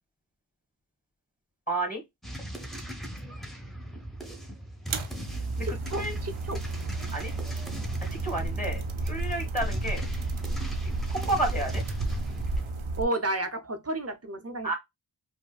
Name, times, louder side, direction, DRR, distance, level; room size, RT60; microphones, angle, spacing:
voice 1, 1.7-2.0 5.6-6.1 7.1-7.3 8.2-10.0 11.1-11.8 14.6-14.7, right 2 dB, 15° left, 1.5 m, -31 dB
sound 1, 2.2-12.7, equal, ahead, 0.9 m, -38 dB
sound 2, 4.9-13.0, right 3 dB, 75° right, 0.6 m, -32 dB
voice 2, 5.6-6.6 13.0-14.7, right 1 dB, 30° right, 0.7 m, -32 dB
5.0 x 2.1 x 2.3 m
wide cardioid pair, 40°, 49 cm